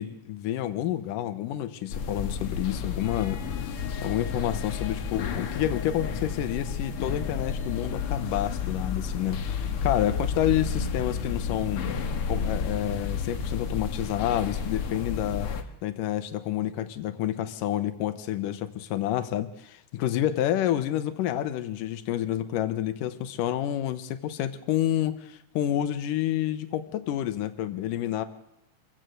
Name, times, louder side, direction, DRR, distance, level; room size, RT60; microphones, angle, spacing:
voice 1, 0.0-3.4 4.0-11.9 12.3-15.5 15.8-28.2, left 12 dB, 85° left, 10 dB, 2.7 m, -29 dB
sound 1, 1.9-15.6, left 6 dB, 55° left, 1.9 m, -31 dB
25.5 x 15.5 x 6.7 m, 0.81 s
omnidirectional pair, 3.8 m